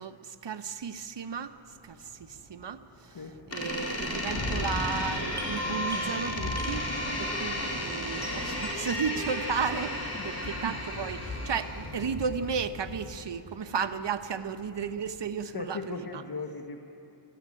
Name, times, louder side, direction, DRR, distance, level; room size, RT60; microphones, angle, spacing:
voice 1, 0.0-1.5 1.8-2.8 3.2-6.9 7.2-16.2, right 6 dB, 55° right, 9 dB, 1.2 m, -34 dB
Thunderstorm, 0.8-0.9 1.3-1.4 1.7-15.3, left 1 dB, 70° left, 7.2 m, -41 dB
Door, 3.5-12.0, left 1 dB, 30° left, 4.7 m, -34 dB
sound 1, 4.5-13.0, equal, 5° left, 5.9 m, -41 dB
voice 2, 15.5-16.8, left 4 dB, 45° left, 4 dB, 1.6 m, -37 dB
23.0 x 15.0 x 9.0 m, 2.8 s
cardioid pair, 60°, 49 cm